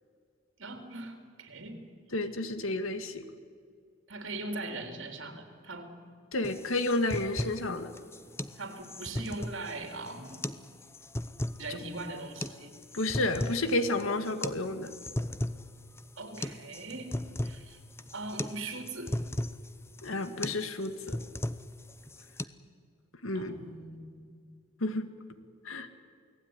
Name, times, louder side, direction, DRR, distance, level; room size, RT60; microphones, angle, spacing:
voice 1, 0.6-1.8 4.1-5.9 8.6-10.5 11.6-12.7 16.2-17.2 17.4-17.8 18.1-19.2 23.3-24.2, right 2 dB, 65° right, 5 dB, 3.7 m, -40 dB
voice 2, 2.1-3.2 6.3-7.9 12.9-14.9 20.0-21.2 23.2-23.5 24.8-25.1 25.7-26.0, left 2 dB, 75° left, 9 dB, 2.1 m, -31 dB
sound 1, 6.4-22.4, left 1 dB, 10° left, 0.7 m, -37 dB
28.5 x 19.0 x 9.8 m, 2.3 s
head